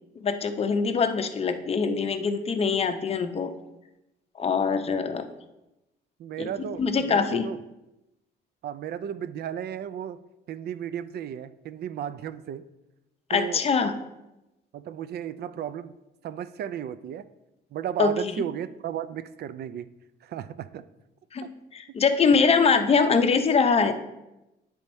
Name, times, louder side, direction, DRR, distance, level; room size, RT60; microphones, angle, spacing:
voice 1, 0.2-3.5 4.4-5.2 6.4-6.5 6.8-7.5 13.3-13.9 18.0-18.3 21.3-23.9, left 5 dB, 35° left, 7 dB, 0.6 m, -23 dB
voice 2, 6.2-7.6 8.6-10.2 10.5-12.6 13.3-13.6 14.7-15.9 16.2-17.3 17.7-19.9 20.2-20.8 21.4-21.5, right 9 dB, 60° right, 14 dB, 0.4 m, -34 dB
9.2 x 3.5 x 4.2 m, 0.95 s
cardioid pair, 120°, 19 cm